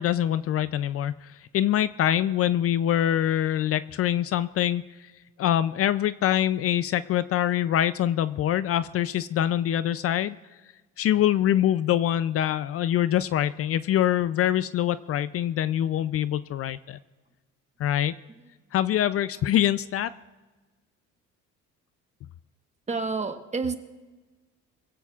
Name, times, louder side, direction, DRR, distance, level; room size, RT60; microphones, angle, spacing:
voice 1, 0.0-5.1 5.4-10.4 11.0-17.0 17.8-18.1 18.7-20.1, left 11 dB, 50° left, 15 dB, 0.5 m, -24 dB
voice 2, 22.9-23.8, right 4 dB, 20° right, 7 dB, 1.3 m, -29 dB
25.0 x 16.0 x 2.4 m, 1.3 s
cardioid pair, 110°, 30 cm